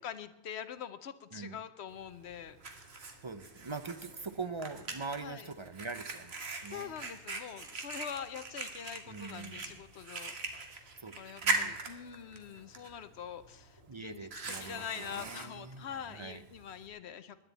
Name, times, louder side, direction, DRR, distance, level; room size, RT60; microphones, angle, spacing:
voice 1, 0.0-2.6 5.2-5.5 6.7-10.9 11.2-17.4, left 8 dB, 85° left, 12 dB, 1.0 m, -44 dB
voice 2, 1.3-1.6 3.2-7.0 9.0-9.8 11.0-11.9 13.9-16.4, right 4 dB, 35° right, 11 dB, 0.5 m, -43 dB
Fire, 1.9-16.9, right 3 dB, 70° right, 1.6 m, -41 dB
20.5 x 9.9 x 4.0 m, 0.96 s
omnidirectional pair, 1.1 m